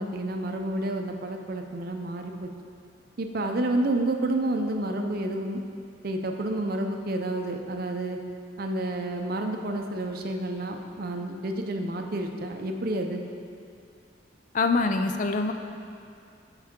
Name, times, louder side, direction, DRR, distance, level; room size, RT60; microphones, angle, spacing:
voice 1, 0.0-2.5 3.2-5.6 6.0-8.2 8.6-13.2, right 1 dB, 55° right, 4 dB, 0.6 m, -29 dB
voice 2, 14.5-15.5, left 3 dB, 45° left, 6 dB, 0.4 m, -24 dB
11.0 x 4.8 x 3.6 m, 2.5 s
head